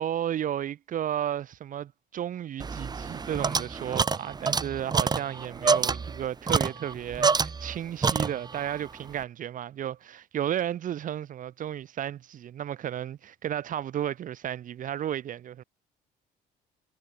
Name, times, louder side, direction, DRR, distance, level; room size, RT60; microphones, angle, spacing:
voice 1, 0.0-15.6, right 10 dB, 50° right, 1.2 m, -33 dB
sound 1, 2.6-7.8 8.0-8.7, right 5 dB, 25° right, 1.2 m, -27 dB
cardioid pair, 110°, 17 cm